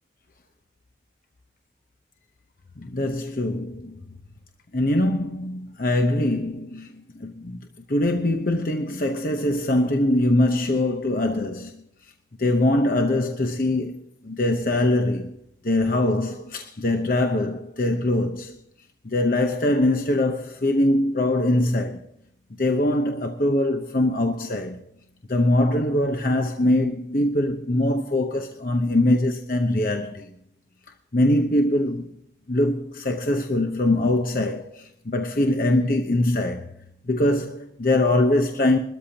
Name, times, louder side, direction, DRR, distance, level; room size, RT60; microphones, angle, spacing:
voice 1, 2.8-4.0 4.7-7.6 7.9-11.8 12.4-14.0 14.2-15.4 15.6-18.6 19.0-22.0 22.6-24.8 25.3-30.3 31.1-32.1 32.5-36.7 37.1-38.8, left 1 dB, 50° left, 0.9 m, -22 dB
21.5 x 13.5 x 2.9 m
head